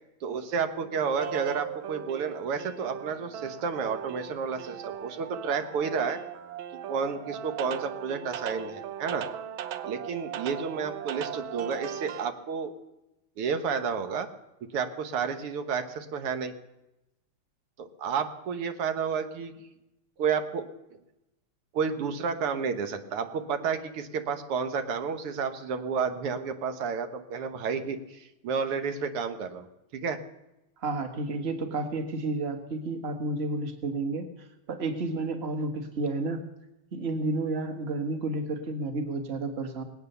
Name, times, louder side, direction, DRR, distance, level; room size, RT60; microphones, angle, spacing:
voice 1, 0.2-6.2 6.9-9.2 9.9-12.7 13.4-14.3 14.7-16.5 17.8-19.5 20.2-20.6 21.7-29.7 29.9-30.2, right 6 dB, 90° right, 8 dB, 2.1 m, -31 dB
sound 1, 1.2-12.3, right 10 dB, 70° right, 1.5 m, -38 dB
voice 2, 30.8-36.4 36.9-39.8, right 2 dB, 30° right, 6 dB, 1.7 m, -31 dB
20.5 x 8.8 x 6.8 m, 0.92 s
omnidirectional pair, 2.4 m